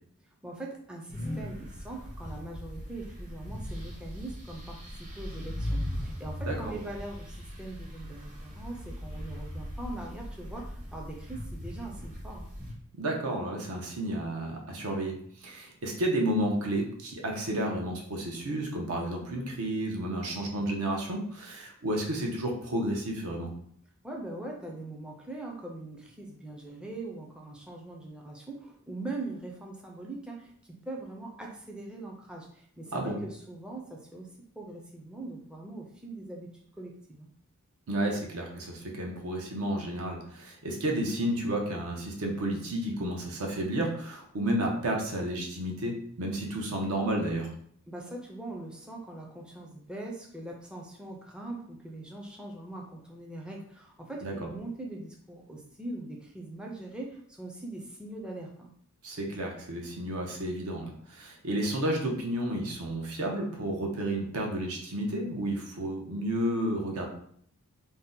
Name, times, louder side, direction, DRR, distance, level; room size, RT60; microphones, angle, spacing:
voice 1, 0.4-12.5 24.0-34.3 34.6-36.5 36.8-37.3 47.9-58.7, right 2 dB, 5° right, -1 dB, 0.4 m, -41 dB
sound 1, 1.1-12.7, equal, 35° right, 0.8 m, -39 dB
voice 2, 13.0-23.5 32.9-33.2 37.9-47.5 54.2-54.3 59.0-67.1, right 1 dB, 75° right, 1 dB, 0.7 m, -31 dB
2.7 x 2.1 x 3.6 m, 0.64 s
head